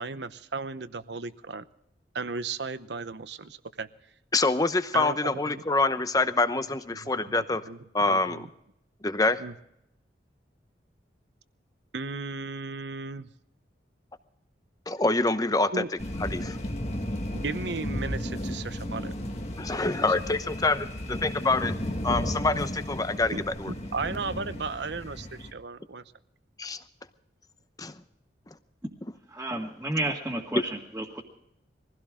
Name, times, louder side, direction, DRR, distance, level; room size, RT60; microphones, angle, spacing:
voice 1, 0.0-1.6 2.1-3.9 4.9-5.6 6.9-7.8 8.1-8.5 9.4-9.5 11.9-13.3 15.7-15.9 17.3-19.1 19.9-20.1 23.3-26.0, right 4 dB, 70° right, 13 dB, 0.8 m, -35 dB
voice 2, 4.3-7.6 7.9-8.5 9.0-9.4 14.9-15.8 16.2-16.6 19.6-20.9 21.2-21.7 22.0-23.3 23.6-23.7 26.6-26.8 27.8-27.9, left 3 dB, 20° left, 11 dB, 0.8 m, -26 dB
sound 1, 16.0-25.5, left 1 dB, 35° left, 1.7 m, -34 dB
voice 3, 29.3-31.2, right 1 dB, 10° right, -3 dB, 1.8 m, -31 dB
22.5 x 16.0 x 3.7 m, 0.78 s
head